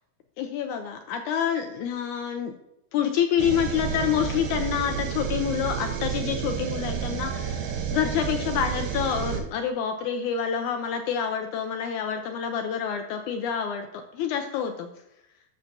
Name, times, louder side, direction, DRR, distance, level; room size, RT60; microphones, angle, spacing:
voice 1, 0.4-2.5 2.9-14.9, left 8 dB, 80° left, 5 dB, 1.7 m, -27 dB
sound 1, 3.4-9.4, right 7 dB, 70° right, 2.4 m, -30 dB
13.0 x 6.4 x 2.7 m, 0.84 s
omnidirectional pair, 4.1 m